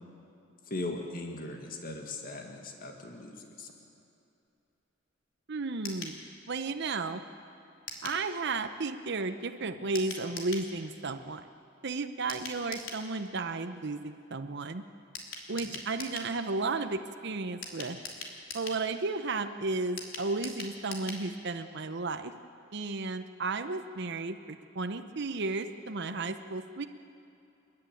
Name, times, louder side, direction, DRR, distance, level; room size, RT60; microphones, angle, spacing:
voice 1, 0.7-3.7 15.5-15.8, left 2 dB, 45° left, 3 dB, 1.9 m, -39 dB
voice 2, 5.5-6.2 6.5-7.2 8.0-11.4 11.8-14.8 15.5-18.0 18.5-22.3 22.7-26.8, right 3 dB, 60° right, 8 dB, 0.8 m, -33 dB
sound 1, 5.8-6.2 7.9-8.2 9.9-10.7 12.3-13.0 15.1-16.3 17.6-18.8 20.0-21.2 21.5-21.6 21.9-22.0, left 4 dB, 80° left, 3.1 m, -41 dB
29.0 x 11.0 x 9.1 m, 2.8 s
head